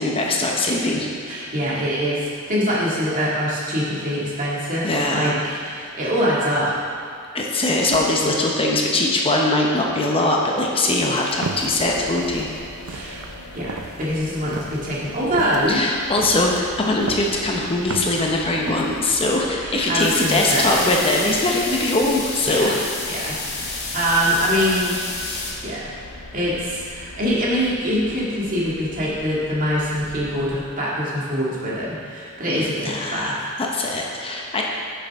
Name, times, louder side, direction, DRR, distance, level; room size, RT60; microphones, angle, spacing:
voice 1, 0.0-1.1 4.8-5.4 7.3-12.5 15.7-22.7 32.5-34.6, left 2 dB, 25° left, -1 dB, 0.8 m, -21 dB
voice 2, 1.3-6.9 12.9-13.2 13.5-15.8 19.6-20.8 22.4-22.7 23.1-24.9 25.6-25.9 26.3-33.4, equal, 40° right, -6 dB, 2.0 m, -24 dB
sound 1, 11.1-19.1, right 3 dB, 65° right, 0.6 m, -36 dB
sound 2, 11.6-30.6, left 1 dB, 75° left, 0.9 m, -41 dB
sound 3, 20.0-25.5, left 3 dB, 50° left, 1.6 m, -29 dB
9.5 x 6.9 x 3.6 m, 2.4 s
head